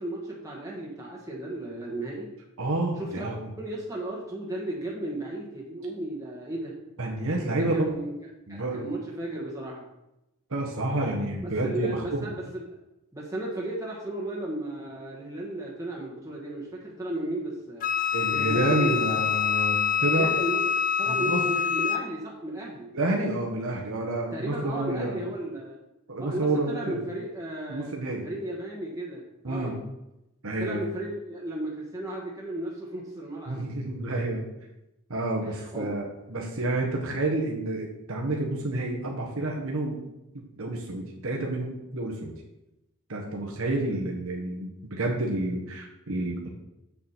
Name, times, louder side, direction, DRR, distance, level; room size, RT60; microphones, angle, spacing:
voice 1, 0.0-2.3 3.0-3.3 3.6-6.7 7.5-8.1 8.5-9.8 11.4-12.7 13.1-17.9 18.3-19.2 20.0-22.9 24.3-25.7 26.2-27.9 28.2-29.7 30.6-33.6 35.4-35.9, right 1 dB, 15° right, -4 dB, 1.4 m, -34 dB
voice 2, 2.6-3.5 7.0-7.7 8.5-8.9 10.5-12.3 18.1-20.3 21.1-21.4 22.9-25.2 26.1-27.0 27.7-28.3 29.4-29.7 30.4-30.8 33.5-34.5 35.1-40.0 40.6-42.3 43.1-46.5, right 2 dB, 70° right, -1 dB, 1.3 m, -29 dB
Wind instrument woodwind instrument, 17.8-22.1, left 8 dB, 40° left, 0.4 m, -26 dB
7.3 x 6.8 x 4.4 m, 0.91 s
head